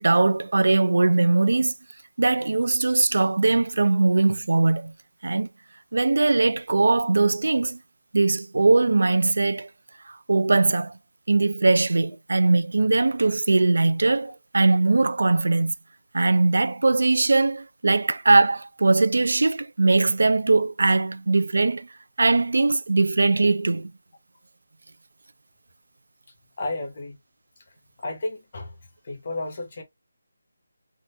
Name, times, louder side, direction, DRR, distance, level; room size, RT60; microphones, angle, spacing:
voice 1, 0.0-1.7 2.2-4.9 5.2-5.5 5.9-7.8 8.1-9.7 10.1-10.9 11.3-15.7 16.1-21.9 22.2-23.9, right 3 dB, 60° right, 0.3 m, -20 dB
voice 2, 26.6-27.2 28.0-28.7 29.0-29.8, left 2 dB, 30° left, 0.9 m, -32 dB
3.6 x 2.5 x 2.5 m
figure-of-eight pair, 180°, 0 cm